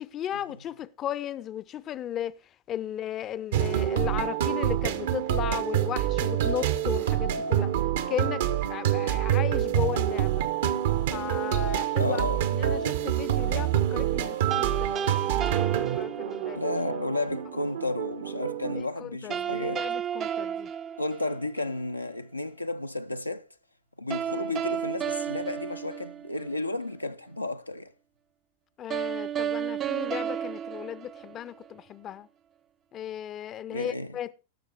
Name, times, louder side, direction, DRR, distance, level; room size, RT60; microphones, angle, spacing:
voice 1, 0.0-2.4 2.7-7.7 8.1-10.5 11.1-12.2 12.5-16.6 18.8-20.7 28.8-32.3 32.9-34.3, left 10 dB, 30° left, 0.5 m, -36 dB
sound 1, 3.5-18.8, right 11 dB, 60° right, 0.9 m, -27 dB
voice 2, 12.0-12.5 16.5-19.9 21.0-23.4 24.0-27.9 33.7-34.2, left 2 dB, 85° left, 0.5 m, -32 dB
sound 2, 14.5-16.7 19.3-21.7 24.1-26.6 28.9-31.7, right 9 dB, 30° right, 0.5 m, -32 dB
17.0 x 6.6 x 4.0 m
figure-of-eight pair, 90°, 0 cm